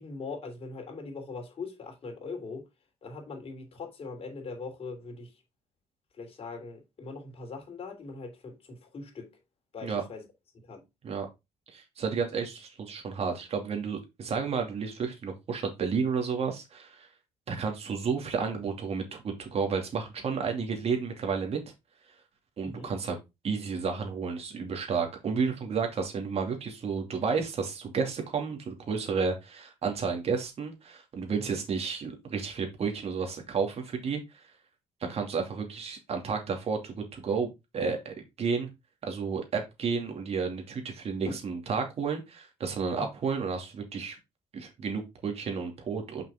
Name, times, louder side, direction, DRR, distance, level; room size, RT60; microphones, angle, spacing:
voice 1, 0.0-2.7 3.0-5.3 6.2-9.3 9.7-10.3 10.5-10.8 22.6-22.9 31.4-31.6 41.2-41.4 43.0-43.1, left 3 dB, 45° left, 3.1 m, -41 dB
voice 2, 11.7-17.1 17.5-21.6 22.6-23.2 23.4-34.4 35.0-38.7 39.0-44.2 44.5-46.2, right 5 dB, 50° right, 2.7 m, -31 dB
6.2 x 5.6 x 3.7 m
supercardioid pair, 80°, 14 cm